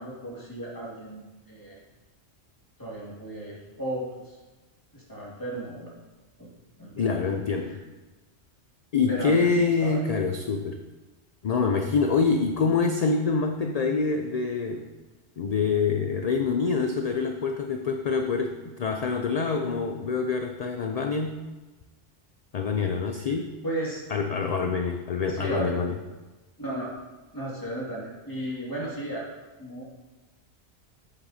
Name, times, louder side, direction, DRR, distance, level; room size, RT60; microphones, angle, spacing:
voice 1, 0.0-1.8 2.8-4.4 4.9-5.9 6.4-6.5 6.8-7.3 7.6-7.8 9.1-10.1 23.6-24.0 25.3-25.7 26.6-26.9 27.3-29.9, right 1 dB, 15° left, -6 dB, 2.2 m, -35 dB
voice 2, 7.0-7.8 8.9-10.8 11.4-14.9 15.4-21.4 22.5-23.5 24.1-25.9, left 5 dB, 60° left, 5 dB, 0.4 m, -26 dB
8.3 x 7.7 x 2.8 m, 1.2 s
omnidirectional pair, 1.2 m